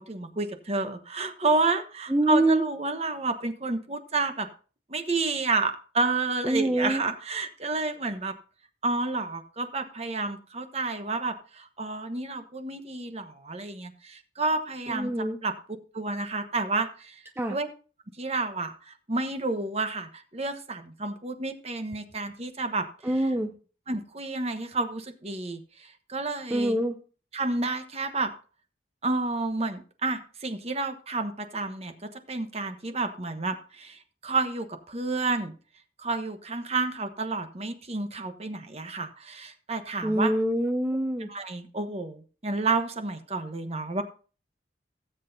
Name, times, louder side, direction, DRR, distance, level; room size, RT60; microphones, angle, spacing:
voice 1, 0.0-4.5 4.9-8.3 8.8-15.1 15.4-15.5 15.9-17.2 17.5-17.7 18.2-23.3 23.9-26.8 27.3-28.3 29.0-31.9 32.3-35.5 36.0-40.3 41.3-44.0, right 3 dB, 35° right, 8 dB, 1.1 m, -30 dB
voice 2, 2.1-2.6 6.4-7.0 14.9-15.4 17.4-17.6 23.0-23.5 26.5-27.0 40.0-41.3, right 1 dB, 10° right, 5 dB, 0.6 m, -25 dB
17.0 x 8.0 x 2.8 m, 0.38 s
head